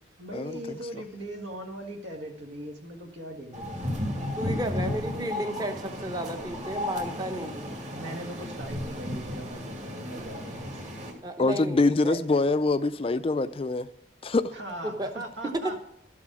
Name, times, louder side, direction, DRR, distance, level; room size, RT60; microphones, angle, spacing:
voice 1, 0.2-3.9 4.7-5.3 7.9-10.8 14.5-15.8, right 1 dB, 75° right, 4 dB, 1.8 m, -40 dB
sound 1, 3.5-11.1, left 1 dB, 35° right, 2.0 m, -34 dB
voice 2, 4.4-7.7 11.2-12.2 15.0-15.1 15.6-15.8, right 1 dB, 20° right, 6 dB, 0.9 m, -33 dB
voice 3, 11.4-13.9 14.2-14.5, left 3 dB, 30° left, 13 dB, 0.4 m, -24 dB
12.5 x 7.5 x 6.0 m, 0.78 s
head